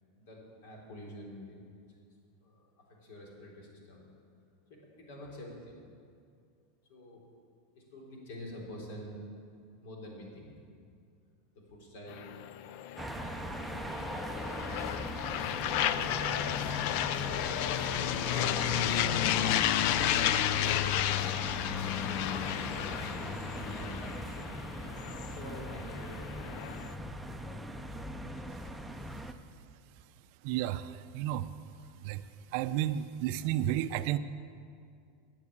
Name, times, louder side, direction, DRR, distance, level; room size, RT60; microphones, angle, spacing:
voice 1, 0.1-1.6 2.4-4.1 4.7-5.8 6.9-7.3 7.8-9.3 9.8-10.5 11.5-12.3 13.2-13.9 15.3-19.5 20.8-21.5 21.8-24.6 25.3-28.4, left 1 dB, 70° left, -1 dB, 3.7 m, -47 dB
sound 1, 12.1-26.9, left 12 dB, 55° left, 0.4 m, -32 dB
sound 2, 13.0-29.3, right 1 dB, 5° right, 0.5 m, -40 dB
voice 2, 30.4-31.5 32.0-34.2, right 12 dB, 55° right, 13 dB, 0.4 m, -32 dB
10.5 x 8.0 x 8.5 m, 2.3 s
supercardioid pair, 150°, 0 cm